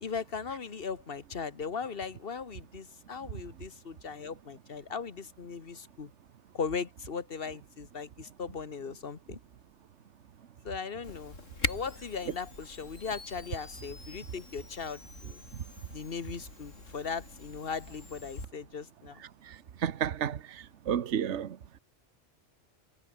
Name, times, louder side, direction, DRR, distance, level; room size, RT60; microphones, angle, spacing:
voice 1, 0.0-6.1 6.5-9.4 10.6-11.4 11.7-15.4 15.9-19.2, left 5 dB, 50° left, 1.6 m, -38 dB
Camera, 11.0-18.5, left 2 dB, 85° left, 5.3 m, -42 dB
voice 2, 19.8-21.6, right 9 dB, 70° right, 1.3 m, -31 dB
omnidirectional pair, 1.3 m